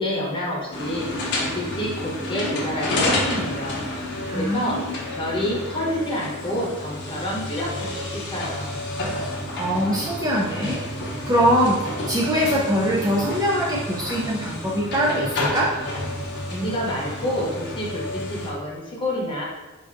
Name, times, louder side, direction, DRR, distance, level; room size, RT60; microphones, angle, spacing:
voice 1, 0.0-3.8 4.3-8.7 16.5-19.4, left 1 dB, 25° left, -4 dB, 0.8 m, -28 dB
sound 1, 0.7-18.5, left 1 dB, 55° left, 0.8 m, -30 dB
voice 2, 4.3-4.9 9.6-10.8 11.2-11.8 12.1-15.7, equal, 15° right, -4 dB, 0.4 m, -22 dB
4.5 x 2.6 x 2.5 m, 1.2 s
head